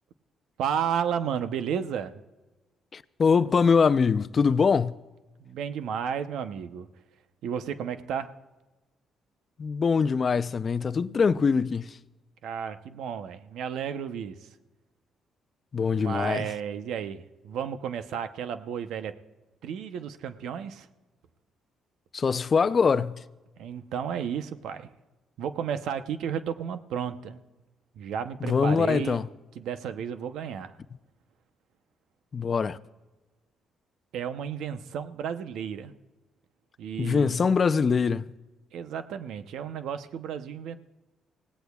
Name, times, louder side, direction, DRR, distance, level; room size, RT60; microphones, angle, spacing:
voice 1, 0.6-2.2 5.4-6.9 7.4-8.3 12.4-14.4 15.9-19.1 19.6-20.9 23.6-24.9 25.4-27.4 28.0-29.2 29.6-30.7 34.1-35.9 36.8-37.4 38.7-40.8, right 8 dB, 80° right, 0.8 m, -32 dB
voice 2, 2.9-4.9 9.6-11.9 15.7-16.5 22.1-23.2 28.4-29.3 32.3-32.8 37.0-38.3, left 5 dB, 40° left, 0.5 m, -23 dB
25.5 x 17.5 x 2.4 m
cardioid pair, 90°, 0 cm